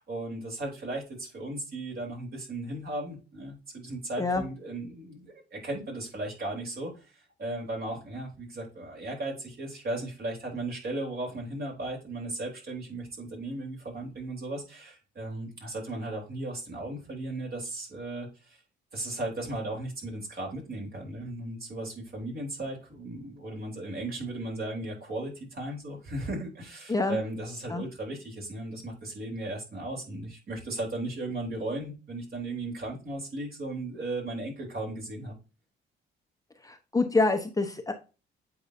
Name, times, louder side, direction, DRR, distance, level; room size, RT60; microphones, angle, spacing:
voice 1, 0.0-18.6 18.9-35.3, right 2 dB, 50° right, -1 dB, 3.4 m, -36 dB
voice 2, 36.6-37.9, left 3 dB, 15° left, 5 dB, 0.8 m, -26 dB
8.2 x 4.7 x 2.6 m, 0.31 s
cardioid pair, 90°, 20 cm